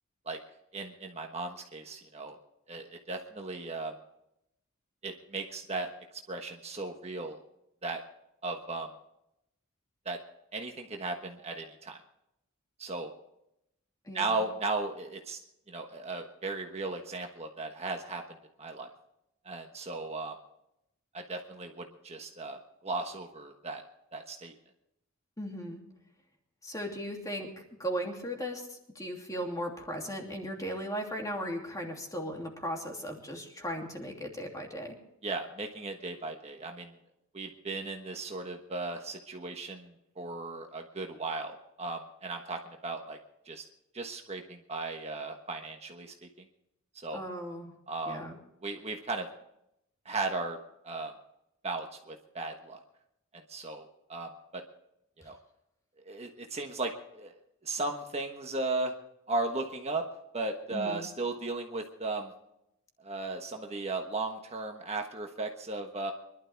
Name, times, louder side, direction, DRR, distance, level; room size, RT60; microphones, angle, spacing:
voice 1, 0.7-2.4 2.7-3.9 5.0-5.9 6.3-7.4 7.8-8.0 8.4-8.9 10.0-10.2 10.5-12.0 12.8-13.1 14.1-15.4 15.7-18.2 18.6-18.9 19.4-20.4 21.1-23.8 24.1-24.5 35.2-36.9 37.3-43.2 43.5-43.6 43.9-46.1 46.9-47.2 47.9-48.2 48.6-49.3 50.0-50.6 50.8-51.1 51.6-52.8 53.5-54.6 55.2-55.4 56.0-57.3 57.6-58.9 59.3-60.0 60.3-62.3 63.0-66.1, right 3 dB, 30° right, 3 dB, 1.3 m, -36 dB
voice 2, 14.1-14.4 25.4-25.8 26.6-27.5 27.8-35.0 47.1-47.7 48.1-48.4 60.7-61.1, equal, 15° left, 1 dB, 2.8 m, -37 dB
24.5 x 12.0 x 3.5 m, 0.81 s
head